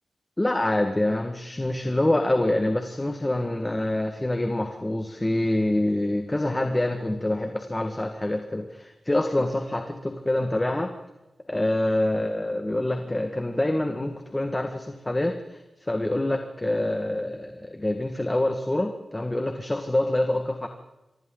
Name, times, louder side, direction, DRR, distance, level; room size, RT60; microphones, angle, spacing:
voice 1, 0.4-10.9 11.5-15.6 15.9-20.7, left 1 dB, 20° left, 5 dB, 1.7 m, -26 dB
27.5 x 24.5 x 3.9 m, 0.99 s
wide cardioid pair, 105°, 0 cm